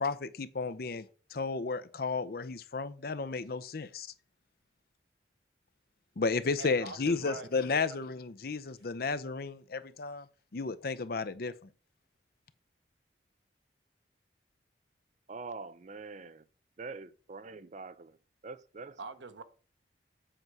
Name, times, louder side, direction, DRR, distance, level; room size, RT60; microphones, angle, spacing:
voice 1, 0.0-4.1 6.2-10.3 10.5-11.7, left 4 dB, 55° left, 0.6 m, -33 dB
voice 2, 6.6-8.0 19.0-19.4, right 4 dB, 85° right, 0.9 m, -44 dB
voice 3, 15.3-16.4 16.8-18.2 18.4-19.0, right 4 dB, 40° right, 0.5 m, -44 dB
7.9 x 4.7 x 6.0 m
head